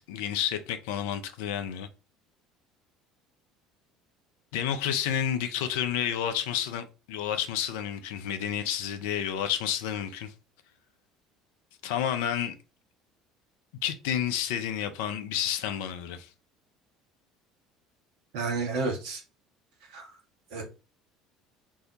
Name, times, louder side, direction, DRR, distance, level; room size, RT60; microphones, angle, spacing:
voice 1, 0.0-1.9 4.5-10.3 11.8-12.5 13.8-16.3, left 9 dB, 65° left, 0.4 m, -30 dB
voice 2, 18.3-19.2 19.9-20.1 20.5-20.6, right 4 dB, 60° right, 1.0 m, -31 dB
2.7 x 2.1 x 3.7 m
figure-of-eight pair, 60°, 0 cm